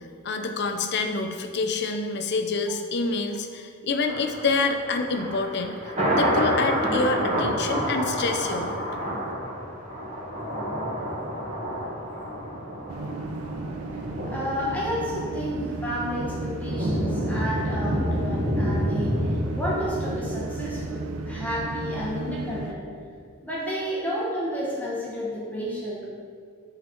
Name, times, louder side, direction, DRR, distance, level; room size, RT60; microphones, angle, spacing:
voice 1, 0.2-5.8 6.1-8.8, left 3 dB, 50° left, 6 dB, 0.5 m, -27 dB
Thunder, 4.0-21.2 21.5-21.6, equal, 35° right, 1.4 m, -29 dB
sound 1, 12.9-22.7, right 2 dB, 90° right, 0.5 m, -34 dB
voice 2, 14.3-19.2 19.6-22.8 23.4-26.1, equal, 5° left, -5 dB, 0.9 m, -31 dB
6.8 x 3.9 x 4.3 m, 2.1 s
head